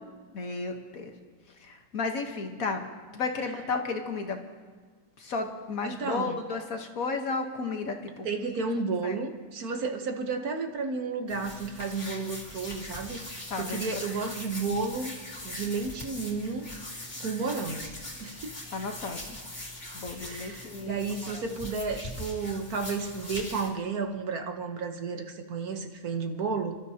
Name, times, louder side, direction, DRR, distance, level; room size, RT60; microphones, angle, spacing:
voice 1, 0.3-1.1 1.6-2.9 3.1-4.4 5.2-8.5 9.0-9.2 13.5-14.2 18.7-19.4 19.9-21.6, left 4 dB, 55° left, 4 dB, 1.5 m, -33 dB
voice 2, 5.8-6.4 8.2-15.1 15.4-16.7 17.2-17.9 18.2-18.5 20.2-26.8, right 4 dB, 60° right, 5 dB, 1.5 m, -32 dB
sound 1, 11.3-23.7, left 1 dB, 25° left, 2.5 m, -41 dB
29.5 x 13.0 x 2.8 m, 1.5 s
omnidirectional pair, 1.8 m